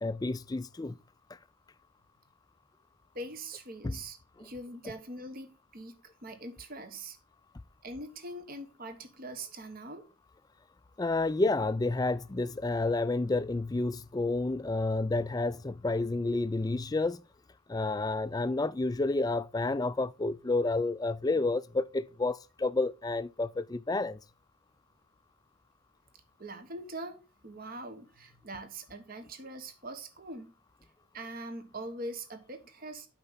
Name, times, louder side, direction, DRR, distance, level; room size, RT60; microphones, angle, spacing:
voice 1, 0.0-0.9 3.8-4.0 11.0-17.2 17.7-24.2, left 2 dB, 20° left, 0.3 m, -30 dB
voice 2, 3.1-7.2 7.8-10.1 26.4-27.2 27.4-30.6 31.1-33.1, right 1 dB, 45° right, 1.3 m, -42 dB
8.6 x 5.9 x 4.0 m
head